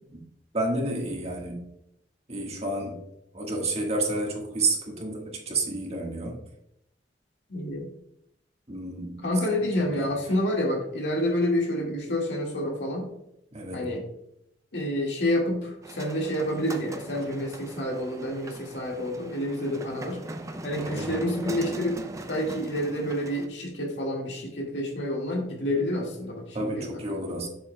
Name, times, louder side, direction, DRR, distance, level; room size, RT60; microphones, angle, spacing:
voice 1, 0.5-1.7 2.3-3.0 3.3-6.4 8.7-9.2 9.8-10.1 13.5-14.0 20.8-21.1 26.5-27.5, right 2 dB, 35° right, 0 dB, 1.6 m, -30 dB
voice 2, 7.5-7.9 9.2-13.1 13.7-14.1 14.7-20.2 20.6-22.0 22.3-27.2, left 1 dB, 75° left, 0 dB, 1.9 m, -28 dB
sound 1, 15.8-23.5, right 2 dB, 20° right, 0.5 m, -40 dB
7.5 x 7.0 x 2.3 m, 0.78 s
head